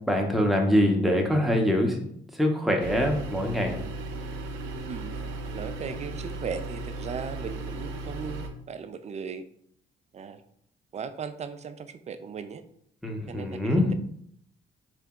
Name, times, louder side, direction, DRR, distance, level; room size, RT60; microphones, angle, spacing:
voice 1, 0.1-2.0 2.4-3.7 13.0-13.9, equal, ahead, 1 dB, 0.7 m, -24 dB
sound 1, 2.8-8.5, right 2 dB, 80° right, 0.6 m, -36 dB
voice 2, 4.9-9.4 10.1-10.4 10.9-12.6 13.3-13.9, right 6 dB, 35° right, 10 dB, 0.4 m, -37 dB
3.3 x 2.9 x 3.6 m, 0.68 s
cardioid pair, 90°, 20 cm